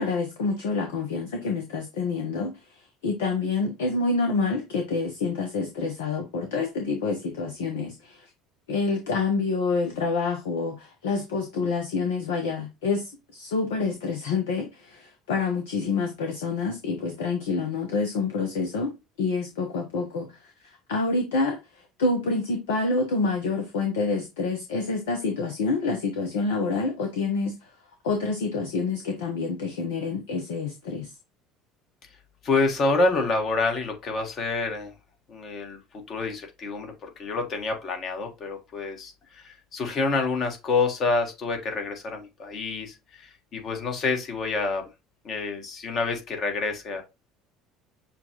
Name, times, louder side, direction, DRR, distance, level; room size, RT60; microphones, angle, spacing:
voice 1, 0.0-8.3 8.7-18.9 19.2-21.6 22.0-27.5 28.0-31.1, left 4 dB, 70° left, 0.8 m, -27 dB
voice 2, 32.4-34.9 35.3-35.8 36.1-44.9 45.2-47.0, left 3 dB, 45° left, 1.5 m, -27 dB
6.8 x 2.4 x 3.0 m
figure-of-eight pair, 65°, 0 cm